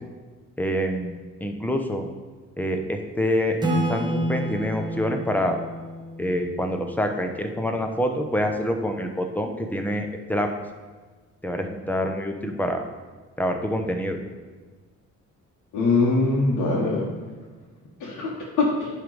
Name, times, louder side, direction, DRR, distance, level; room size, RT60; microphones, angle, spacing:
voice 1, 0.6-2.1 2.6-3.6 3.9-5.6 6.2-10.5 11.4-12.8 13.4-14.2, equal, 5° left, 4 dB, 0.9 m, -26 dB
Acoustic guitar / Strum, 3.6-7.2, right 1 dB, 15° right, 1.4 m, -29 dB
voice 2, 15.7-17.0 18.0-18.9, left 3 dB, 75° left, -6 dB, 1.5 m, -22 dB
10.0 x 3.6 x 4.9 m, 1.4 s
cardioid pair, 90°, 30 cm